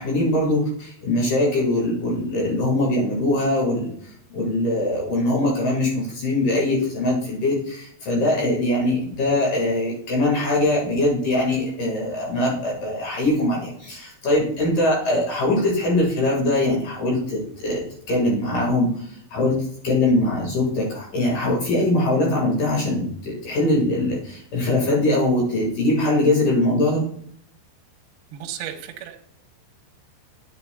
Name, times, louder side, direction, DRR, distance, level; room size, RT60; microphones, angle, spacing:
voice 1, 0.0-3.9 4.3-27.1, left 1 dB, 55° left, -3 dB, 2.9 m, -22 dB
voice 2, 28.3-29.2, right 10 dB, 75° right, 3 dB, 2.5 m, -34 dB
9.9 x 9.6 x 2.3 m, 0.67 s
omnidirectional pair, 5.3 m